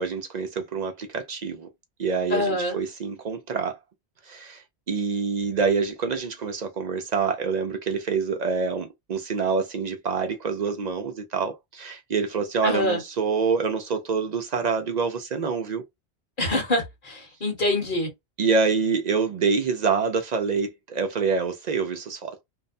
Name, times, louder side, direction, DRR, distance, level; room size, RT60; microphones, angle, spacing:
voice 1, 0.0-1.7 2.0-3.8 4.3-4.6 4.9-15.8 18.4-22.4, right 5 dB, 55° right, 0.5 m, -26 dB
voice 2, 2.3-2.8 12.6-13.0 16.4-18.1, left 1 dB, 50° left, 1.2 m, -25 dB
2.6 x 2.1 x 2.5 m
omnidirectional pair, 1.2 m